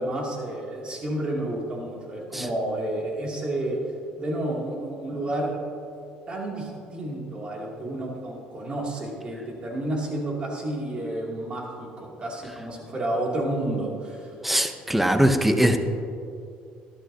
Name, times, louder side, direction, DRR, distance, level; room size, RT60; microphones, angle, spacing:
voice 1, 0.0-3.8 4.2-5.6 6.3-14.3, right 1 dB, 35° right, -2 dB, 2.6 m, -30 dB
voice 2, 14.4-15.8, equal, 5° right, 8 dB, 0.7 m, -21 dB
12.5 x 12.5 x 2.8 m, 2.5 s
cardioid pair, 110°, 3 cm